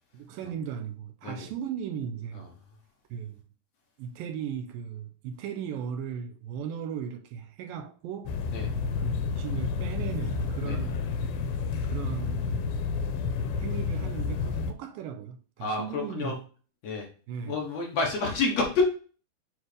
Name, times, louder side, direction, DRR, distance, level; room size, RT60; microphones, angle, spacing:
voice 1, 0.1-2.5 3.1-3.4 4.0-8.4 9.0-11.1 11.8-12.9 13.6-16.4 17.3-17.6, right 8 dB, 85° right, 2.2 m, -37 dB
sound 1, 8.3-14.7, left 5 dB, 90° left, 2.4 m, -30 dB
voice 2, 15.6-16.4 16.8-17.0 17.5-18.8, left 3 dB, 60° left, 1.9 m, -29 dB
8.2 x 4.0 x 3.3 m
omnidirectional pair, 4.2 m